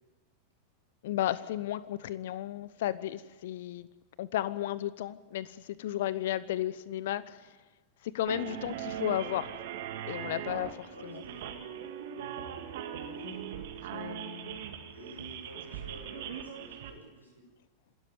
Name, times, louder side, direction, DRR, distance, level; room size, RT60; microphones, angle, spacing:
voice 1, 1.0-3.9 4.2-7.4 8.0-9.5 10.1-11.2 13.3-13.4 13.9-14.6, left 13 dB, 55° left, 17 dB, 1.0 m, -34 dB
sound 1, 8.3-16.9, right 9 dB, 55° right, 2.2 m, -40 dB
voice 2, 10.9-11.5 13.1-13.5 14.9-17.5, equal, 85° left, 0 dB, 7.5 m, -49 dB
27.0 x 13.0 x 9.5 m, 1.2 s
figure-of-eight pair, 90°, 0 cm